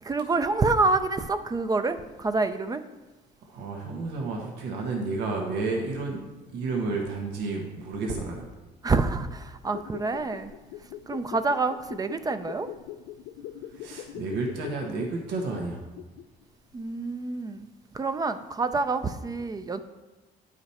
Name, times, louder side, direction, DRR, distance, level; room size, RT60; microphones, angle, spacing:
voice 1, 0.0-2.8 8.8-10.5 11.1-12.7 16.7-17.7 17.9-19.8, right 3 dB, 20° right, 10 dB, 0.4 m, -27 dB
voice 2, 3.4-6.2 6.5-8.5 13.7-15.8, right 3 dB, 90° right, 1 dB, 1.3 m, -31 dB
sound 1, 9.6-16.4 16.7-16.8, left 12 dB, 90° left, 0.4 m, -42 dB
9.8 x 5.0 x 4.2 m, 1.1 s
cardioid pair, 110°, 17 cm